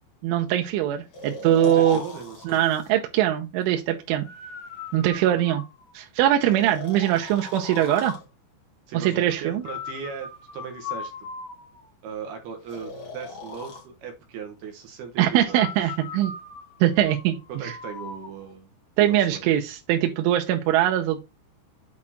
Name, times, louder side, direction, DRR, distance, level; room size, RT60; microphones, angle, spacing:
voice 1, 0.2-2.0 2.5-4.3 4.9-5.6 5.9-8.1 8.9-9.6 15.2-16.3 16.8-17.7 19.0-21.2, right 12 dB, 85° right, 3.2 m, -22 dB
Breathing, 1.1-2.9 4.2-5.9 6.5-8.3 9.6-11.9 12.7-13.8 15.5-18.3, left 4 dB, 50° left, 1.8 m, -38 dB
voice 2, 1.6-2.6 5.4-5.5 8.9-11.1 12.0-16.0 17.5-18.7 19.0-19.5, right 6 dB, 70° right, 2.7 m, -38 dB
8.5 x 4.4 x 4.3 m
omnidirectional pair, 5.6 m